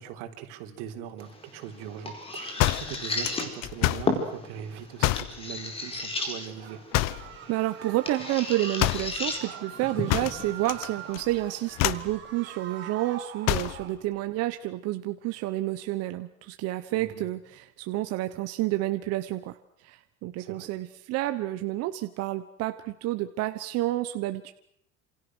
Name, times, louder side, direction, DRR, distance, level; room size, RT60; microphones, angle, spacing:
voice 1, 0.0-6.8 16.9-17.2 20.4-20.7, right 9 dB, 90° right, 5 dB, 3.9 m, -41 dB
sound 1, 1.2-12.2, left 2 dB, 20° left, 4.4 m, -35 dB
sound 2, 2.6-4.2 5.0-5.4 6.9-7.4 8.8-9.2 10.1-10.9 11.1-11.4 11.8-12.1 13.4-13.8, left 16 dB, 60° left, 1.0 m, -27 dB
sound 3, 6.6-14.0, right 9 dB, 40° right, 4.6 m, -44 dB
voice 2, 7.5-19.6 19.8-24.5, right 16 dB, 55° right, 9 dB, 1.2 m, -30 dB
28.0 x 27.5 x 6.4 m, 0.73 s
cardioid pair, 165°, 30 cm